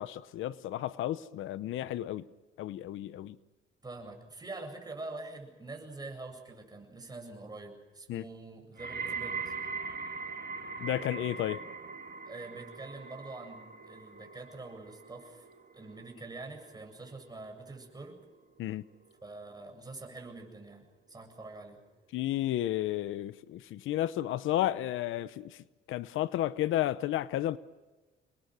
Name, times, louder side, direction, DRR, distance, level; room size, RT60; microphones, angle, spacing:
voice 1, 0.0-2.3 2.6-3.4 8.1-8.2 10.8-11.6 18.6-18.8 22.1-25.6 25.9-27.6, left 13 dB, 85° left, 0.9 m, -32 dB
voice 2, 3.8-9.5 12.3-15.5 15.7-18.2 19.2-21.8, right 2 dB, 20° right, 7.8 m, -45 dB
sound 1, 8.8-19.9 20.2-20.7 21.5-21.6, right 5 dB, 50° right, 1.9 m, -42 dB
29.0 x 21.5 x 6.4 m
cardioid pair, 90°, 20 cm